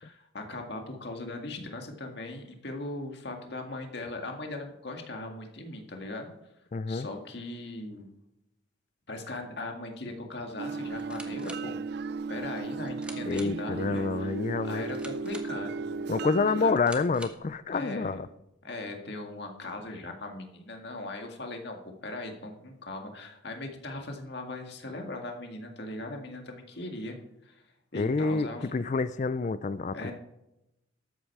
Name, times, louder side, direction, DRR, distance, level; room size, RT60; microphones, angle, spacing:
voice 1, 0.0-6.3 6.9-8.1 9.1-11.8 12.3-14.3 14.6-16.0 16.6-16.7 17.7-18.2 18.6-21.8 22.0-27.2 27.4-27.6 27.9-28.7 29.9-30.1, left 2 dB, 55° left, 1.9 m, -39 dB
voice 2, 6.7-7.1 13.2-14.8 16.1-18.3 27.9-30.0, left 4 dB, 35° left, 0.3 m, -28 dB
sound 1, 10.6-16.7, right 4 dB, 55° right, 0.3 m, -35 dB
sound 2, 10.9-17.6, right 1 dB, 5° right, 1.1 m, -49 dB
12.5 x 8.7 x 4.8 m
head